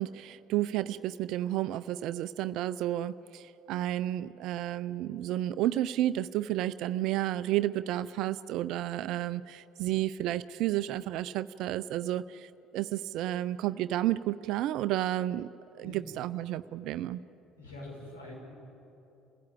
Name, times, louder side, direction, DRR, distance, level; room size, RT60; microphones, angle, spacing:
voice 1, 0.0-15.5 15.8-17.2, right 13 dB, 55° right, 15 dB, 0.5 m, -31 dB
voice 2, 15.8-16.1 17.6-18.5, left 1 dB, 80° left, -2 dB, 6.1 m, -44 dB
29.0 x 16.0 x 8.5 m, 2.9 s
figure-of-eight pair, 55°, 0 cm